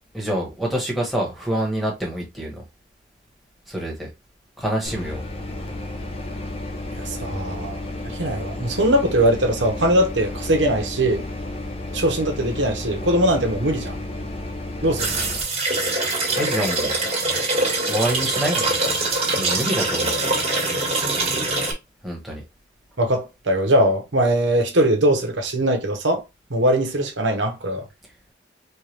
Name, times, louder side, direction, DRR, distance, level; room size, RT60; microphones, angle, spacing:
voice 1, 0.1-2.6 3.7-4.1 4.6-5.2 16.4-16.9 17.9-19.1 19.4-20.2 22.0-22.4, right 1 dB, ahead, 1.3 m, -26 dB
sound 1, 4.8-15.4, left 1 dB, 30° left, 0.8 m, -32 dB
voice 2, 7.0-7.8 8.0-11.2 11.9-14.0 14.8-15.2 23.0-26.2 26.5-27.8, right 1 dB, 80° right, 1.0 m, -21 dB
sound 2, 15.0-21.7, right 2 dB, 30° right, 1.7 m, -23 dB
4.5 x 2.4 x 3.3 m
head